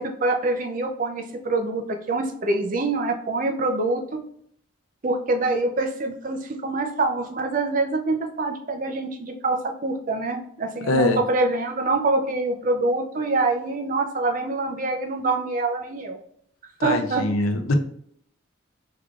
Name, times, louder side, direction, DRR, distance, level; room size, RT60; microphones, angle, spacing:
voice 1, 0.0-4.0 5.0-16.2 16.8-17.2, right 2 dB, 40° right, 4 dB, 0.5 m, -25 dB
voice 2, 10.9-11.2 16.8-17.7, left 2 dB, 75° left, 6 dB, 0.5 m, -22 dB
3.6 x 3.3 x 2.4 m, 0.65 s
head